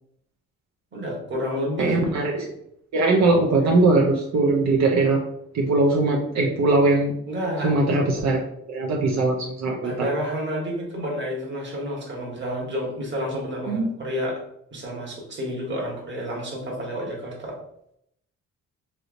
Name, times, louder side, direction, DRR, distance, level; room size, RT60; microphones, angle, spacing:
voice 1, 0.9-2.1 3.6-3.7 7.3-7.8 9.8-14.4 14.7-17.6, equal, 40° right, -2 dB, 1.3 m, -30 dB
voice 2, 1.8-2.5 2.9-5.2 5.5-7.1 7.6-8.4 8.7-10.1 13.7-13.9, right 2 dB, 65° right, -1 dB, 0.6 m, -20 dB
3.4 x 2.8 x 2.5 m, 0.74 s
cardioid pair, 90°, 30 cm